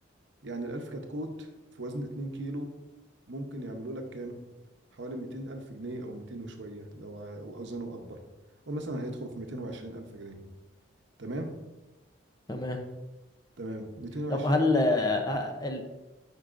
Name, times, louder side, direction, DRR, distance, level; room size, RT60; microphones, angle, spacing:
voice 1, 0.4-2.7 3.3-4.4 4.9-8.2 8.7-10.4 11.2-11.5 13.6-14.6, right 1 dB, 70° right, 4 dB, 0.8 m, -37 dB
voice 2, 12.5-12.8 14.3-15.8, left 2 dB, 20° left, 4 dB, 0.6 m, -26 dB
9.7 x 4.6 x 2.5 m, 1.1 s
head